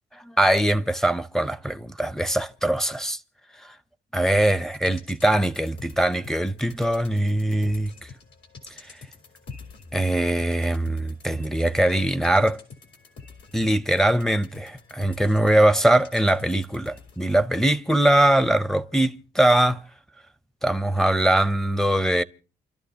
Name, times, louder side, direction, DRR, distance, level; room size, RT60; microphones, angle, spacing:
voice 1, 0.4-3.2 3.6-3.7 4.1-7.9 9.9-12.6 13.5-19.8 20.6-22.2, right 1 dB, ahead, 0.6 m, -22 dB
sound 1, 4.6-17.5 17.8-17.9, left 4 dB, 65° left, 3.7 m, -47 dB
29.0 x 12.5 x 2.8 m
cardioid pair, 90°, 20 cm